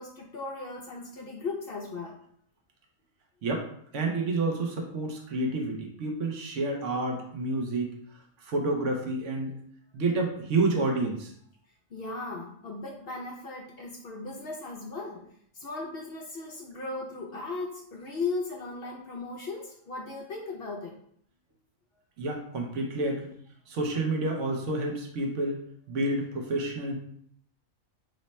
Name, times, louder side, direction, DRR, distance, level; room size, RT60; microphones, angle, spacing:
voice 1, 0.0-2.2 11.9-15.3 15.5-20.9, left 3 dB, 60° left, -1 dB, 0.7 m, -37 dB
voice 2, 3.9-7.9 8.5-9.5 9.9-11.3 22.2-23.3 23.7-25.6 25.9-26.9, right 2 dB, 70° right, 1 dB, 1.0 m, -29 dB
3.1 x 2.1 x 4.0 m, 0.65 s
omnidirectional pair, 1.3 m